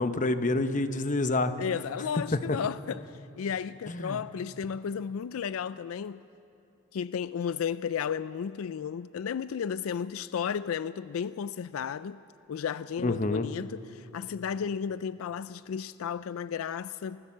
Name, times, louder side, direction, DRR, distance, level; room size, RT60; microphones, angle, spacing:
voice 1, 0.0-1.5 2.5-2.6 3.9-4.2 13.0-13.5, left 2 dB, 40° left, 0.9 m, -27 dB
voice 2, 1.6-6.2 6.9-12.2 12.5-17.2, left 7 dB, 85° left, 0.4 m, -33 dB
23.5 x 15.0 x 7.4 m
head